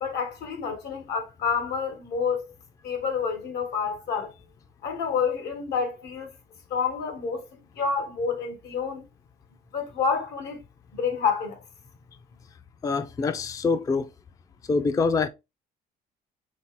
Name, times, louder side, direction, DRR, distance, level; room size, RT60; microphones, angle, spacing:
voice 1, 0.0-2.5 2.8-4.3 4.8-6.3 6.7-7.5 7.8-9.0 9.7-10.6 10.9-11.6, left 6 dB, 75° left, 1.2 m, -28 dB
voice 2, 12.8-14.1 14.7-15.3, left 4 dB, 20° left, 0.3 m, -25 dB
4.6 x 3.3 x 2.9 m
cardioid pair, 110°, 17 cm